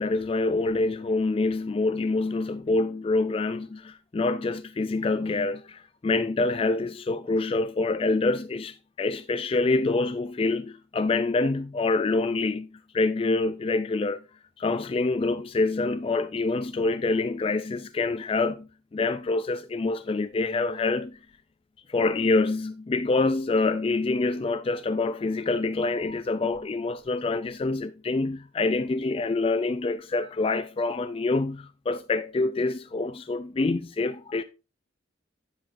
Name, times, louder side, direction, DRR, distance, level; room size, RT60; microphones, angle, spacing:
voice 1, 0.0-12.7 12.9-14.2 14.6-18.7 18.9-21.2 21.9-34.4, left 3 dB, 30° left, 0.3 m, -26 dB
10.5 x 7.2 x 2.6 m
head